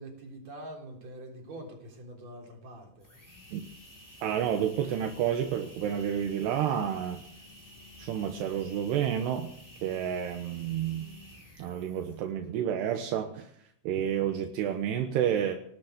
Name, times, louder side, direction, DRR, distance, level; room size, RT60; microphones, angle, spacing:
voice 1, 0.0-3.2, right 1 dB, 40° right, 0 dB, 4.6 m, -45 dB
sound 1, 3.0-12.4, left 1 dB, 5° left, 2.7 m, -51 dB
voice 2, 4.2-7.2 8.0-9.5 9.8-11.1 11.6-13.5 13.8-15.5, right 9 dB, 80° right, 5 dB, 3.2 m, -30 dB
18.5 x 9.4 x 7.9 m, 0.69 s
omnidirectional pair, 4.8 m